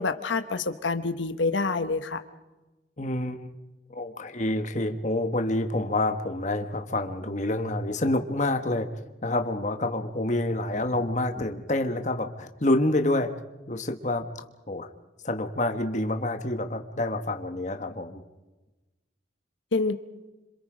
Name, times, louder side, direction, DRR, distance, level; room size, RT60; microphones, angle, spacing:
voice 1, 0.0-2.2 19.7-19.9, left 3 dB, 85° left, 9 dB, 1.1 m, -27 dB
voice 2, 3.0-3.5 3.9-8.9 9.2-13.3 13.7-14.2 14.7-14.9 15.2-18.2, left 1 dB, 40° left, 6 dB, 1.4 m, -27 dB
27.0 x 26.0 x 5.1 m, 1.1 s
head